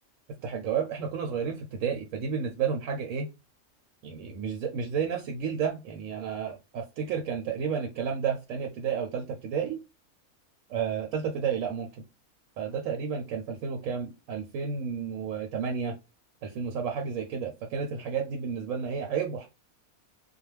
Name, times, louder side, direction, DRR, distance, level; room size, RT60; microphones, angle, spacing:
voice 1, 0.4-3.3 4.0-9.8 10.7-11.9 12.6-15.9 16.4-19.5, right 6 dB, 70° right, 2 dB, 0.9 m, -31 dB
2.3 x 2.1 x 3.1 m, 0.27 s
omnidirectional pair, 1.5 m